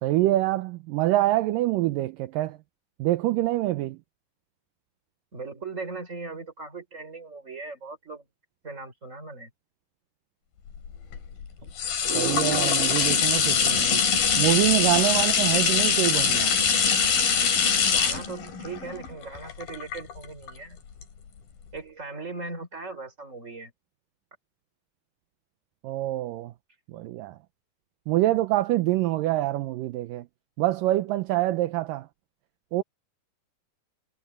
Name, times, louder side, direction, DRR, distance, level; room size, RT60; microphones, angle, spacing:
voice 1, 0.0-2.6 3.0-4.0 12.1-14.0 14.4-16.5 25.8-26.5 26.9-27.4 28.1-30.3 30.6-32.1 32.7-32.8, right 16 dB, 80° right, 2.4 m, -25 dB
voice 2, 5.3-8.3 8.6-9.5 11.6-11.8 17.8-20.8 21.7-23.7, right 3 dB, 20° right, 4.9 m, -39 dB
sound 1, 10.7-20.5 21.0-21.1, left 6 dB, 85° left, 5.1 m, -23 dB
omnidirectional pair, 4.0 m